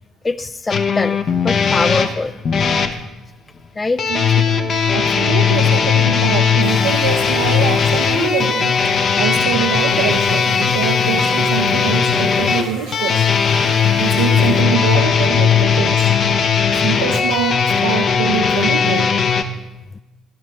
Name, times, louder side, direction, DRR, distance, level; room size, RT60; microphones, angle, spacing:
voice 1, 0.2-2.4 3.8-4.0 13.9-14.0, left 3 dB, 25° left, 14 dB, 0.3 m, -23 dB
sound 1, 0.7-2.9 4.0-19.4, left 6 dB, 50° left, 0.8 m, -17 dB
voice 2, 4.1-8.8 9.2-13.2 14.0-16.1 16.8-19.1, right 9 dB, 75° right, 3 dB, 0.5 m, -24 dB
sound 2, 6.6-14.6, equal, 90° left, 3.4 m, -36 dB
12.0 x 11.5 x 3.4 m, 1.1 s
figure-of-eight pair, 50°, 0 cm